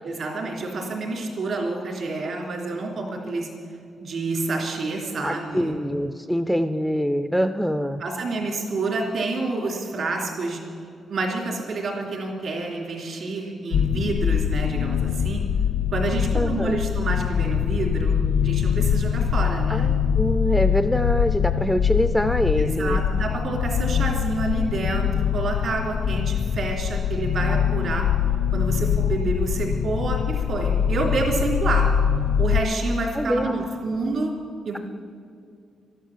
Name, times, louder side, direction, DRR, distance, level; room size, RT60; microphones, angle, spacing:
voice 1, 0.0-3.5 4.0-5.7 8.0-10.6 11.1-15.4 15.9-19.9 22.6-28.1 28.5-31.9 32.4-34.3 34.6-34.8, right 3 dB, 55° right, 1 dB, 3.3 m, -28 dB
voice 2, 5.2-8.0 16.3-16.8 19.7-23.0 33.2-33.7, equal, ahead, 10 dB, 0.4 m, -24 dB
sound 1, 13.7-32.6, left 8 dB, 80° left, 0.6 m, -23 dB
13.0 x 11.5 x 7.4 m, 2.3 s
wide cardioid pair, 170°, 0 cm